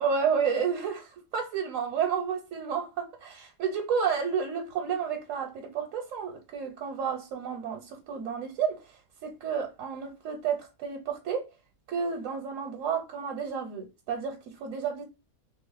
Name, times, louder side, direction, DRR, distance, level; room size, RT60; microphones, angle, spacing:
voice 1, 0.0-11.5 11.9-15.0, right 6 dB, 85° right, 1.1 m, -31 dB
3.0 x 2.6 x 3.9 m
omnidirectional pair, 1.3 m